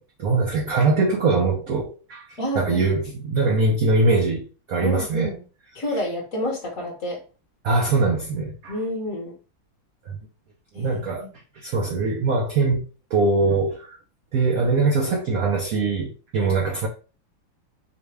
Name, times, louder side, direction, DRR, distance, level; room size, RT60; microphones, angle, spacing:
voice 1, 0.2-5.3 7.6-8.7 10.1-10.2 10.7-11.3 11.6-12.8 13.1-14.0 14.3-16.9, right 3 dB, 75° right, 0.8 m, -22 dB
voice 2, 2.4-2.8 4.8-5.4 5.7-7.2 8.7-9.4 10.7-11.3, left 1 dB, 45° left, 1.2 m, -29 dB
4.8 x 2.2 x 3.2 m
omnidirectional pair, 2.2 m